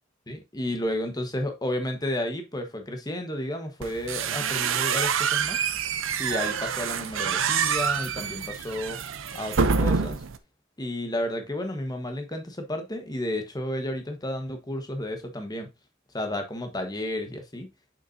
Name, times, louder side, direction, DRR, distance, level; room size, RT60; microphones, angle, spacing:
voice 1, 0.3-5.6 6.2-9.0 9.3-10.2 10.8-15.7 16.1-17.7, left 1 dB, 20° left, 1.2 m, -32 dB
sound 1, 3.8-10.4, right 6 dB, 65° right, 0.6 m, -27 dB
6.7 x 6.0 x 2.6 m
head